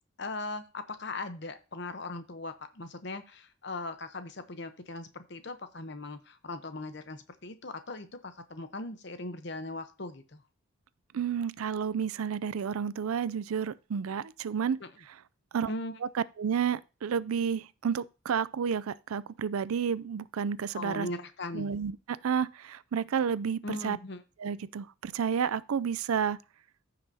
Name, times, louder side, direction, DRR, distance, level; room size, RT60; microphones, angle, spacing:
voice 1, 0.2-10.4 14.8-14.9 15.7-16.0 20.7-21.7 23.6-24.2, left 2 dB, 55° left, 0.9 m, -39 dB
voice 2, 11.1-14.8 15.5-15.7 16.1-21.1 21.5-24.0 24.4-26.4, right 7 dB, 90° right, 0.4 m, -31 dB
14.5 x 5.8 x 2.8 m
head